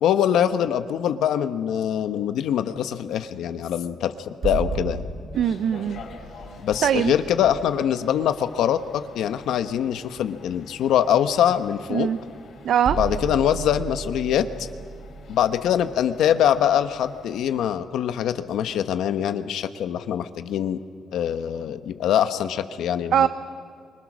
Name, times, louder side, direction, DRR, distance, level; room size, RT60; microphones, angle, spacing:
voice 1, 0.0-5.0 6.6-12.1 13.0-14.7 15.3-20.8 21.1-23.3, left 10 dB, 80° left, 10 dB, 1.0 m, -23 dB
sound 1, 4.4-8.2 11.8-11.9 12.8-16.7, right 5 dB, 40° right, 1.3 m, -34 dB
sound 2, 5.3-17.6, left 4 dB, 55° left, 5.9 m, -46 dB
voice 2, 5.3-6.0 6.8-7.1 11.9-12.2 12.6-13.0 23.1-23.3, right 9 dB, 60° right, 12 dB, 0.5 m, -21 dB
25.0 x 24.0 x 6.2 m, 2.3 s
cardioid pair, 175°, 0 cm